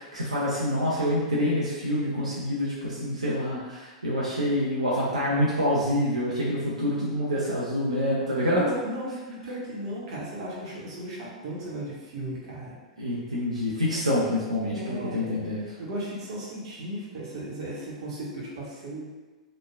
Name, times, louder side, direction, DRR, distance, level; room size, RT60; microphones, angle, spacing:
voice 1, 0.0-8.6 13.0-15.6, left 1 dB, 85° right, -7 dB, 0.5 m, -26 dB
voice 2, 8.6-12.7 14.7-15.5 15.8-19.1, right 1 dB, 55° right, -5 dB, 0.9 m, -35 dB
3.0 x 2.2 x 2.2 m, 1.2 s
figure-of-eight pair, 100°, 3 cm